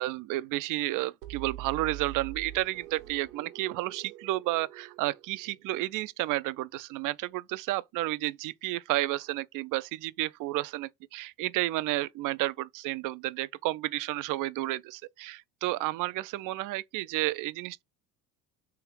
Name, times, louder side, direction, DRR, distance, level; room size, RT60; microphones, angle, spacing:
voice 1, 0.0-17.8, right 17 dB, 45° right, 0.4 m, -31 dB
sound 1, 1.2-6.0, right 12 dB, 85° right, 1.0 m, -44 dB
3.5 x 3.2 x 4.6 m
hypercardioid pair, 70°, 48 cm